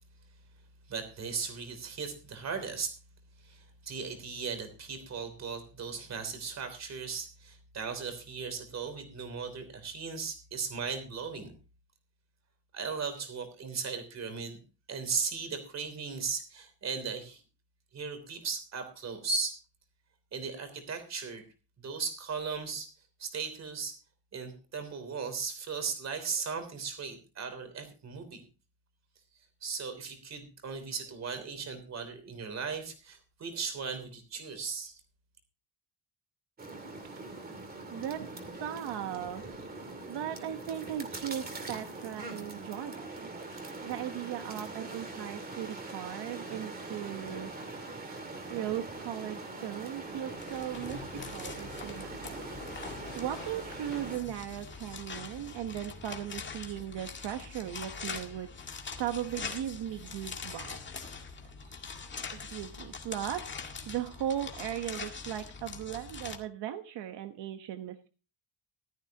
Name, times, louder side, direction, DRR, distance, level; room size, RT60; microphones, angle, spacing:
voice 1, 0.9-3.0 3.4-11.5 12.7-14.6 14.9-17.4 17.9-19.6 20.3-21.5 21.8-22.9 23.2-24.0 24.3-28.4 29.6-35.0, right 5 dB, 40° right, 9 dB, 3.2 m, -37 dB
sound 1, 36.6-54.2, right 2 dB, 20° right, 2.5 m, -42 dB
voice 2, 37.9-39.4 40.1-43.3 43.8-47.5 48.5-52.4 52.9-58.5 59.0-60.8 61.6-61.8 62.3-63.6 63.9-68.1, right 11 dB, 75° right, 7 dB, 1.2 m, -38 dB
sound 2, 49.9-66.4, left 5 dB, 25° left, 1.9 m, -43 dB
15.5 x 13.0 x 2.9 m, 0.33 s
cardioid pair, 170°, 42 cm